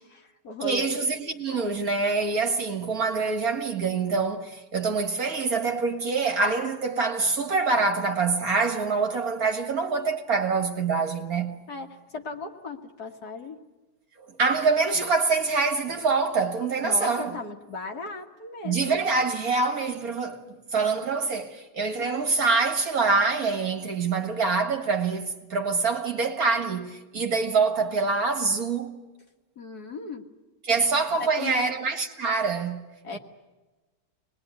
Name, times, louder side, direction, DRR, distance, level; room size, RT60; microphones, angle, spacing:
voice 1, 0.0-1.0 11.7-13.6 16.8-19.1 29.6-30.3 31.2-31.7 33.0-33.2, left 3 dB, 50° left, 1.8 m, -37 dB
voice 2, 0.6-11.6 14.3-17.4 18.6-28.9 30.6-32.9, right 4 dB, 45° right, 1.9 m, -25 dB
26.5 x 20.5 x 9.5 m
omnidirectional pair, 2.4 m